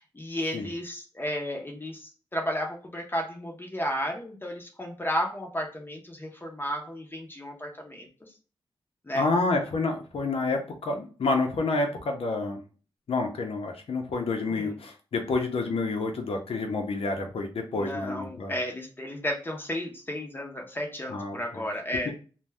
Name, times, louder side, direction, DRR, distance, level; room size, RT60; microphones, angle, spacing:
voice 1, 0.0-8.1 9.1-9.2 14.5-14.7 17.8-22.1, equal, 20° left, 1 dB, 0.6 m, -33 dB
voice 2, 9.1-12.6 13.1-18.5 21.1-21.6 22.0-22.1, left 3 dB, 85° left, 3 dB, 0.6 m, -29 dB
2.6 x 2.2 x 3.3 m, 0.37 s
wide cardioid pair, 125°, 10 cm